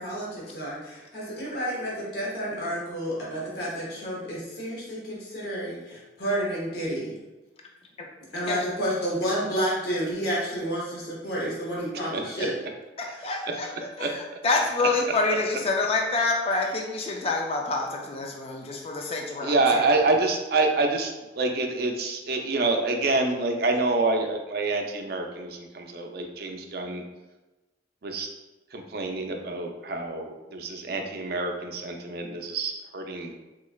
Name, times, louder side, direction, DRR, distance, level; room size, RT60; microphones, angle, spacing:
voice 1, 0.0-7.1 8.3-12.5, equal, 55° left, -5 dB, 1.0 m, -30 dB
voice 2, 13.2-13.7 14.0-14.2 14.4-19.5, left 3 dB, 30° left, 1 dB, 0.3 m, -26 dB
voice 3, 19.4-27.0 28.0-28.3 28.7-33.3, right 3 dB, 55° right, 3 dB, 0.4 m, -27 dB
3.6 x 3.1 x 2.3 m, 1.1 s
head